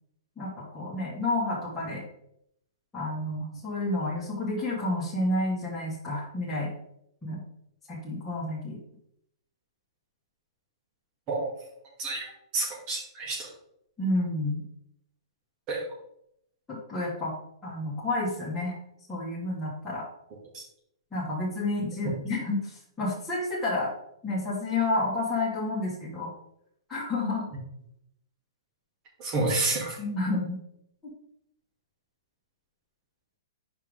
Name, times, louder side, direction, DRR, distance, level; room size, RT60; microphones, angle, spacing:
voice 1, 0.4-2.0 2.9-6.7 7.2-7.4 7.9-8.8 14.0-14.6 16.7-17.3 17.6-18.8 19.1-20.0 21.1-23.9 24.2-26.3 26.9-27.5 30.0-30.6, left 2 dB, 10° left, -8 dB, 2.3 m, -30 dB
voice 2, 12.0-13.5 15.7-15.8 20.5-20.6 22.0-22.1 29.2-30.0, right 3 dB, 30° right, -2 dB, 2.9 m, -29 dB
7.2 x 5.3 x 3.7 m, 0.75 s
figure-of-eight pair, 110°, 2 cm